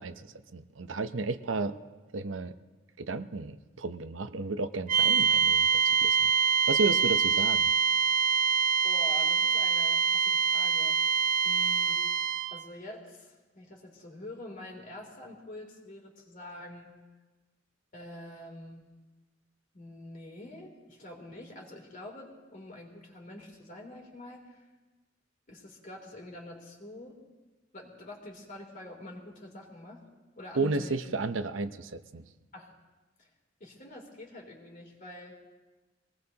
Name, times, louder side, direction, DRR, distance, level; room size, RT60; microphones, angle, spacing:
voice 1, 0.0-1.7 2.1-2.5 3.0-6.3 6.7-7.7 30.6-32.2, right 3 dB, 80° right, 10 dB, 0.7 m, -33 dB
sound 1, 4.9-12.6, right 7 dB, 45° right, 0.8 m, -25 dB
voice 2, 8.8-11.0 11.4-12.0 12.5-16.9 17.9-18.9 19.7-24.6 25.5-27.2 27.7-30.1 30.4-31.2 32.5-32.7 33.2-33.3 33.6-35.3, left 1 dB, 45° left, 0 dB, 3.2 m, -46 dB
24.0 x 19.0 x 2.9 m, 1.2 s
head